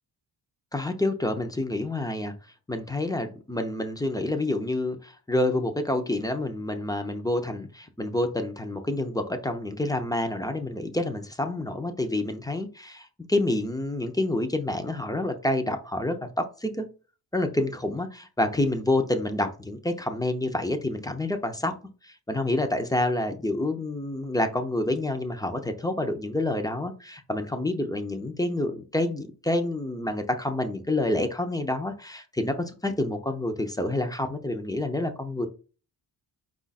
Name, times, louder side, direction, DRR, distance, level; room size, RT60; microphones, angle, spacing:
voice 1, 0.7-2.3 2.7-16.9 17.3-21.7 22.0-32.5 32.8-35.5, left 1 dB, 10° left, 6 dB, 0.6 m, -28 dB
4.9 x 2.5 x 4.0 m, 0.35 s
cardioid pair, 100°, 45 cm